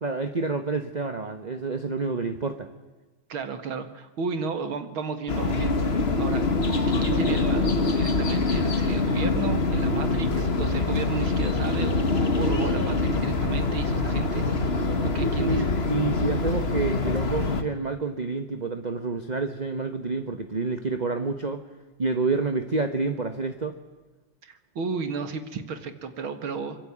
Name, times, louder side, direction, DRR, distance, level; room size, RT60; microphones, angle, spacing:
voice 1, 0.0-2.7 15.2-21.6 22.0-23.7, right 3 dB, 30° right, 8 dB, 0.8 m, -28 dB
voice 2, 3.3-5.8 6.2-6.4 6.7-14.6 15.0-15.7 24.4-26.8, right 5 dB, 70° right, 9 dB, 2.6 m, -33 dB
sound 1, 5.3-17.6, left 3 dB, 30° left, 1.7 m, -24 dB
25.0 x 22.0 x 8.8 m, 1.2 s
omnidirectional pair, 2.4 m